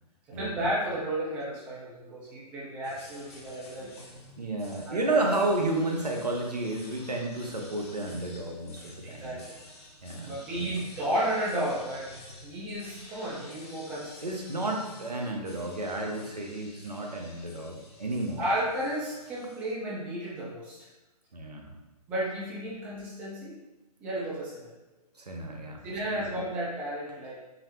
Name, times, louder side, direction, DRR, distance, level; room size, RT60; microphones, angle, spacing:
voice 1, 0.3-3.9 4.9-5.5 9.0-9.4 10.2-12.1 12.4-14.2 18.4-20.9 22.1-23.5 24.0-24.7 25.8-27.4, right 1 dB, 5° right, -7 dB, 0.4 m, -33 dB
sound 1, 2.8-19.7, left 1 dB, 40° left, 0.8 m, -50 dB
voice 2, 4.4-9.4 10.0-10.7 14.2-18.5 21.3-21.8 25.2-26.3, right 2 dB, 80° right, 1 dB, 0.7 m, -32 dB
3.9 x 2.0 x 2.9 m, 1.1 s
figure-of-eight pair, 130°, 20 cm